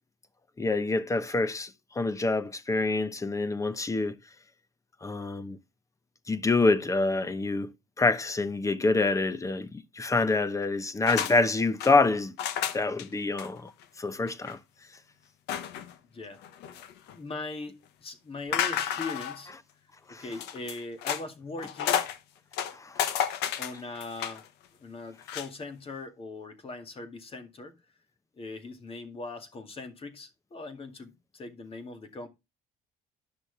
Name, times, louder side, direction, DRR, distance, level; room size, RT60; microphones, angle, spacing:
voice 1, 0.6-4.2 5.0-5.6 6.3-7.7 8.0-12.3 12.7-13.7 14.0-14.6 20.1-20.2 22.7-23.1, left 3 dB, 20° left, 0.8 m, -26 dB
sound 1, 11.1-11.3 11.6-11.9 12.4-13.1 13.4-13.5 13.8-13.9 14.3-14.5 15.5-15.9 16.4-17.2 18.5-19.4 20.3-21.2 21.6-22.2 22.5-24.4 25.2-25.5, left 9 dB, 85° left, 1.0 m, -31 dB
voice 2, 17.1-19.5 20.1-22.0 23.6-24.4 24.8-27.7 28.4-32.3, left 3 dB, 35° left, 2.1 m, -40 dB
10.5 x 6.1 x 3.3 m
cardioid pair, 110°, 17 cm